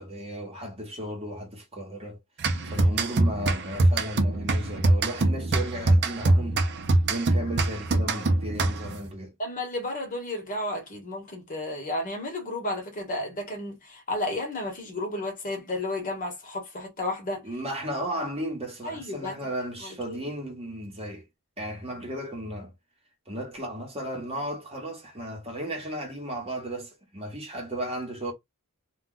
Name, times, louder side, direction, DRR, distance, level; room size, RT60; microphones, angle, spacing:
voice 1, 0.0-2.2 2.6-6.6 7.1-9.3 17.4-21.3 21.6-22.7 23.3-28.3, right 1 dB, 25° right, 0.9 m, -35 dB
sound 1, 2.4-9.1, right 2 dB, 50° right, 0.5 m, -24 dB
voice 2, 9.4-17.4 18.8-19.4 19.8-20.2, left 1 dB, 40° left, 1.0 m, -32 dB
2.3 x 2.2 x 3.7 m
head